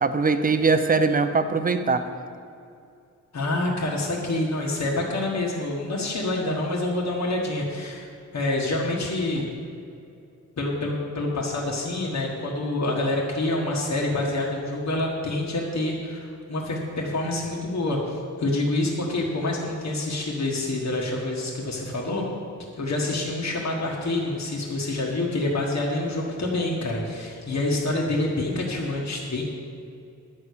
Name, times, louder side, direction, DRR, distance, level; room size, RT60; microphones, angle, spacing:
voice 1, 0.0-2.0, right 4 dB, 30° right, 9 dB, 0.6 m, -21 dB
voice 2, 3.3-9.5 10.6-22.2 22.8-29.4, left 2 dB, 60° left, -3 dB, 1.5 m, -27 dB
10.5 x 6.5 x 8.4 m, 2.6 s
wide cardioid pair, 180°, 31 cm